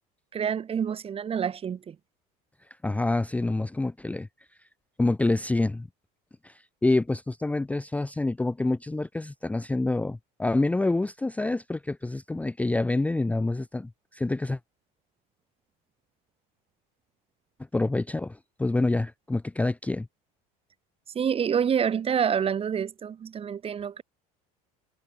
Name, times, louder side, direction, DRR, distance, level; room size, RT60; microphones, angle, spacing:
voice 1, 0.3-2.0 21.1-24.0, right 7 dB, 30° right, 1.5 m, -27 dB
voice 2, 2.8-4.3 5.0-5.9 6.4-14.6 17.7-20.1, left 2 dB, 5° left, 0.6 m, -27 dB
supercardioid pair, 110°, 19 cm